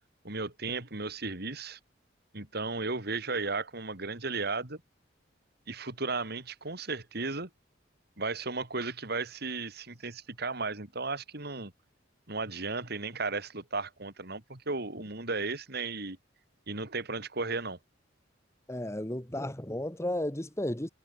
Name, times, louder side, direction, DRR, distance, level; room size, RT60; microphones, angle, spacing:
voice 1, 0.2-1.8 2.3-4.8 5.7-7.5 8.2-11.7 12.3-16.2 16.7-17.8, right 3 dB, 60° right, 3.4 m, -35 dB
voice 2, 18.7-20.9, left 1 dB, 15° left, 2.3 m, -33 dB
head